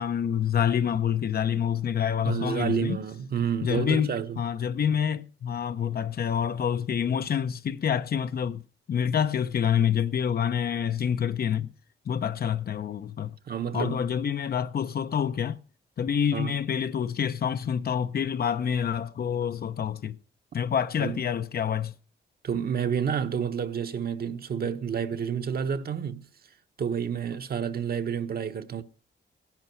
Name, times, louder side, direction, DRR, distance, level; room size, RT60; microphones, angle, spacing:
voice 1, 0.0-3.0 3.6-8.6 8.9-11.7 12.1-13.4 13.7-15.6 16.0-20.2 20.5-21.9, left 8 dB, 50° left, 0.8 m, -27 dB
voice 2, 2.2-4.4 13.5-14.0 16.3-16.5 21.0-21.2 22.4-26.2 26.8-28.8, right 7 dB, 50° right, 1.1 m, -29 dB
17.5 x 10.5 x 4.5 m
wide cardioid pair, 135°, 20 cm